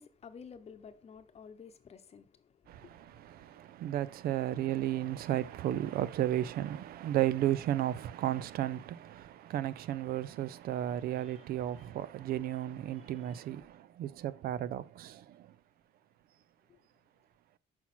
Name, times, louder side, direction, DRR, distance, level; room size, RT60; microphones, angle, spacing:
voice 1, 0.0-3.4 11.2-11.5 13.0-13.4 16.7-16.8, left 6 dB, 40° left, 0.9 m, -53 dB
voice 2, 2.7-15.5, right 12 dB, 65° right, 0.5 m, -34 dB
5.9 x 5.8 x 4.2 m
cardioid pair, 110°, 17 cm